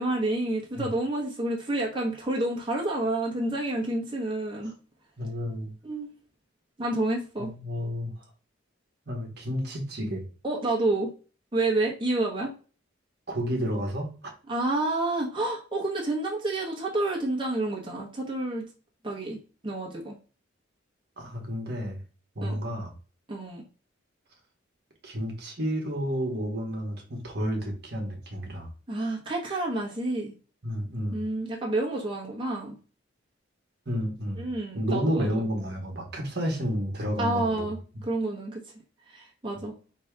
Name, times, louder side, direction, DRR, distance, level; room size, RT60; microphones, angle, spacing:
voice 1, 0.0-4.7 5.8-6.1 6.8-7.5 10.4-11.1 11.5-12.5 14.5-18.7 19.0-20.1 22.4-22.6 23.3-23.6 28.9-30.3 31.1-32.8 34.4-35.4 37.2-38.6 39.1-39.7, right 2 dB, 25° right, -2 dB, 1.1 m, -29 dB
voice 2, 5.2-5.7 7.4-8.1 9.1-10.2 13.3-14.3 21.2-22.0 22.3-22.9 25.0-28.7 30.6-31.2 33.9-37.7, equal, 55° right, 1 dB, 1.2 m, -31 dB
5.2 x 2.8 x 3.3 m, 0.36 s
head